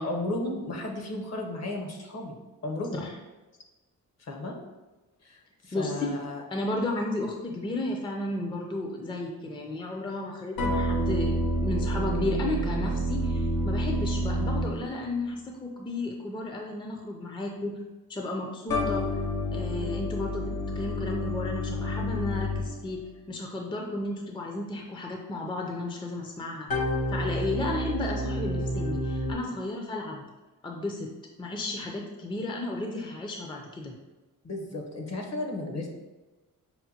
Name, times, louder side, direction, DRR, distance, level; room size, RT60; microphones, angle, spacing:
voice 1, 0.0-2.3 2.6-3.0 4.2-4.6 5.2-5.4 5.6-6.4 34.4-35.9, left 2 dB, 50° left, 2 dB, 0.8 m, -34 dB
voice 2, 5.7-6.2 6.5-17.8 18.1-19.2 19.5-20.4 20.7-23.0 23.3-26.7 27.1-30.2 30.6-33.9, left 2 dB, 15° left, 1 dB, 0.5 m, -33 dB
sound 1, 10.6-15.2 18.7-23.0 26.7-29.3, equal, 85° left, 0.9 m, -29 dB
5.6 x 2.2 x 2.8 m, 1.1 s
cardioid pair, 75°, 35 cm